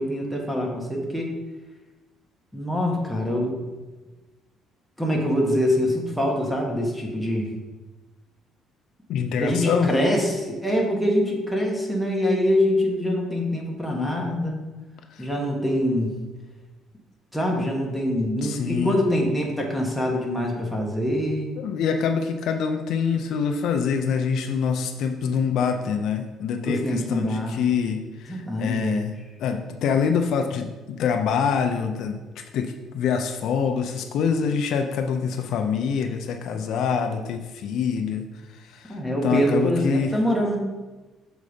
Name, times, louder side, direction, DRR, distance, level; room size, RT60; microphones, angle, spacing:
voice 1, 0.0-1.3 2.5-3.6 5.0-7.5 9.4-14.6 15.2-16.1 17.3-21.5 26.7-27.5 28.3-29.0 38.9-40.6, equal, ahead, -2 dB, 1.2 m, -24 dB
voice 2, 9.1-9.9 15.1-15.3 18.4-19.0 21.6-29.1 29.4-38.2 38.6-39.0 39.2-40.1, left 6 dB, 65° left, 5 dB, 0.5 m, -25 dB
6.5 x 4.1 x 5.0 m, 1.2 s
cardioid pair, 150°, 0 cm